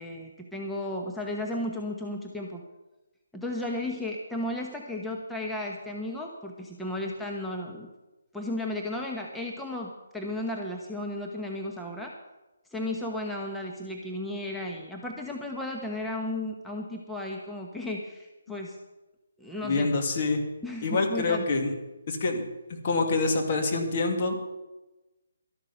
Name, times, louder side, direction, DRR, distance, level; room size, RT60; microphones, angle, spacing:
voice 1, 0.0-2.6 3.3-7.9 8.3-12.1 12.7-18.8 19.4-20.0 20.6-21.5, left 1 dB, 5° left, -1 dB, 1.1 m, -34 dB
voice 2, 19.6-20.4 20.8-21.7 22.1-22.4 22.8-24.5, left 3 dB, 45° left, 3 dB, 2.5 m, -26 dB
12.5 x 12.0 x 5.7 m, 1.1 s
hypercardioid pair, 155°, 0 cm